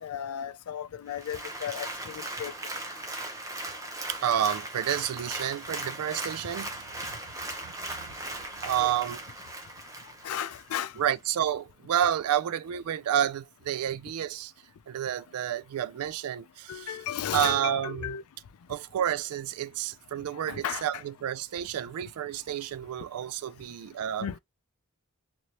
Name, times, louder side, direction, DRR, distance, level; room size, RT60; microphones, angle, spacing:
voice 1, 0.0-2.5 8.8-8.9 10.2-10.9 16.7-18.2 20.5-21.0 24.2-24.4, left 9 dB, 85° left, 0.4 m, -35 dB
Applause, 1.1-10.9 11.3-11.4, right 2 dB, 15° right, 0.6 m, -38 dB
voice 2, 4.1-6.9 7.6-9.2 11.0-14.5 14.9-17.0 17.3-18.1 18.7-24.3, right 10 dB, 85° right, 0.3 m, -30 dB
3.0 x 2.7 x 2.8 m
head